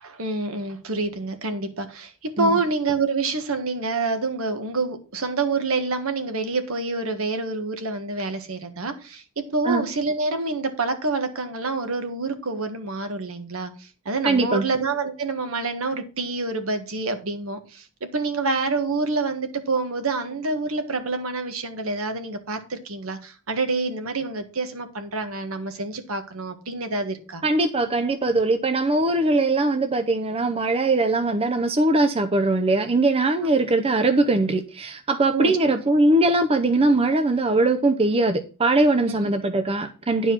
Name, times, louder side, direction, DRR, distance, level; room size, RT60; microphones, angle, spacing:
voice 1, 0.0-27.4 35.3-35.6 39.1-39.3, right 3 dB, 70° right, 1.5 m, -27 dB
voice 2, 14.2-14.6 27.4-40.3, right 2 dB, 25° right, 0.6 m, -21 dB
10.5 x 4.7 x 5.7 m
head